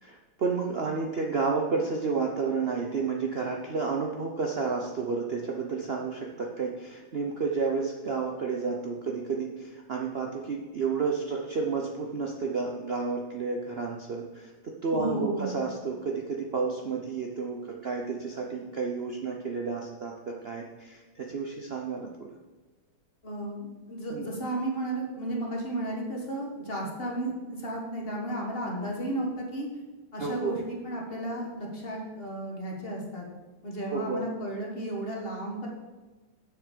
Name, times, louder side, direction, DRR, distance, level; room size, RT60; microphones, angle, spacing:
voice 1, 0.0-22.3 24.1-24.3 30.2-30.6 33.9-34.2, right 4 dB, 75° right, 0 dB, 0.5 m, -31 dB
voice 2, 14.9-15.6 23.2-29.7 30.1-33.2 33.6-35.7, right 1 dB, 30° left, -1 dB, 1.6 m, -33 dB
7.0 x 6.8 x 6.7 m, 1.3 s
omnidirectional pair, 2.3 m